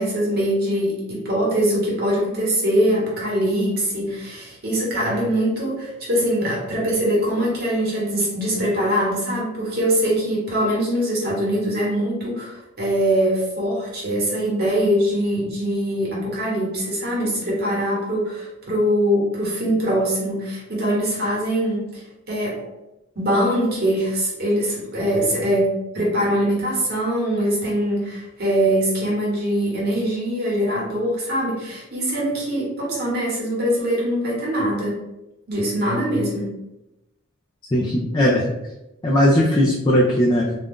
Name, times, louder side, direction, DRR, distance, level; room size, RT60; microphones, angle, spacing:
voice 1, 0.0-22.6 23.1-35.0 35.5-36.5, equal, 50° right, -4 dB, 1.1 m, -22 dB
voice 2, 37.7-38.5 39.0-40.5, equal, 20° left, -4 dB, 0.4 m, -18 dB
2.5 x 2.3 x 3.5 m, 0.94 s
head